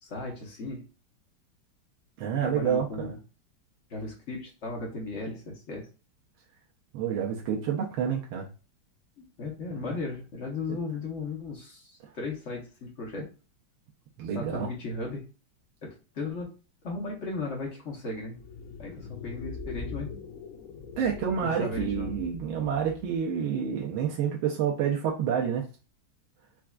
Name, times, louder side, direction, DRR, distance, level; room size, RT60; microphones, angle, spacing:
voice 1, 0.0-0.9 2.4-3.2 3.9-5.9 9.2-13.3 14.3-15.3 15.8-16.5 16.8-18.4 18.8-20.1 21.4-22.2, left 3 dB, 50° left, -1 dB, 0.9 m, -36 dB
voice 2, 2.2-3.1 6.9-8.5 10.7-10.8 14.2-14.7 21.0-25.6, right 8 dB, 90° right, -2 dB, 1.5 m, -28 dB
sound 1, 18.3-23.2, left 5 dB, 80° left, 0.8 m, -41 dB
4.4 x 2.4 x 2.2 m, 0.33 s
omnidirectional pair, 2.2 m